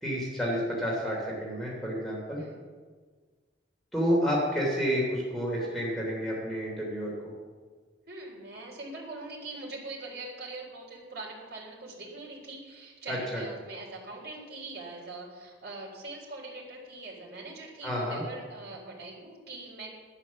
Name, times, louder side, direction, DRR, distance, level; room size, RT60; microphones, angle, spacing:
voice 1, 0.0-2.4 3.9-7.3 13.1-13.4 17.8-18.2, equal, ahead, -4 dB, 3.0 m, -30 dB
voice 2, 8.1-19.9, right 2 dB, 55° right, -3 dB, 3.9 m, -42 dB
11.5 x 11.0 x 7.2 m, 1.5 s
head